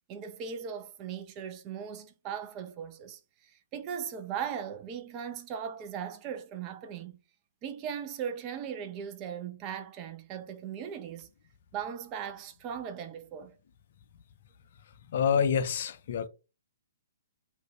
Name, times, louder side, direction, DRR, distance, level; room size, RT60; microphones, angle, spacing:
voice 1, 0.1-7.2 7.6-11.3 11.7-13.5, right 8 dB, 25° right, 0.4 m, -38 dB
voice 2, 15.1-16.3, left 7 dB, 50° left, 0.4 m, -27 dB
2.5 x 2.2 x 3.4 m
figure-of-eight pair, 125°, 0 cm